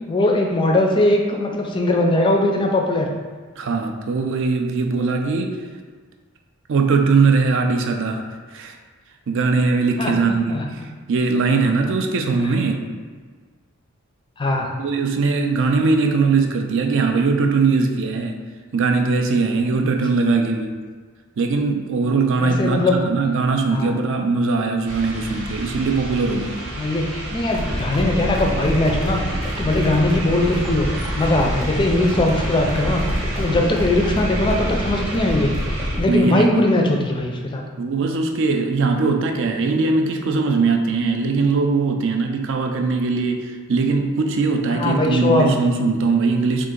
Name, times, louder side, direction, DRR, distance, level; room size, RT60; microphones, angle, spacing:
voice 1, 0.1-3.1 10.0-10.1 10.5-10.6 14.4-14.7 19.8-19.9 22.4-23.0 23.7-23.9 26.8-30.9 31.2-35.5 36.0-37.6 44.7-45.5, left 1 dB, 20° left, 1 dB, 0.4 m, -20 dB
voice 2, 3.6-5.6 6.7-8.2 8.5-8.7 9.3-10.8 11.1-12.9 14.8-18.4 18.7-20.7 21.4-26.6 36.1-36.6 37.8-46.7, right 4 dB, 60° right, 4 dB, 0.4 m, -20 dB
sound 1, 24.8-36.0, right 1 dB, 85° right, 0.9 m, -31 dB
sound 2, 27.5-36.1, equal, 20° right, 0.7 m, -27 dB
3.7 x 2.5 x 3.7 m, 1.5 s
head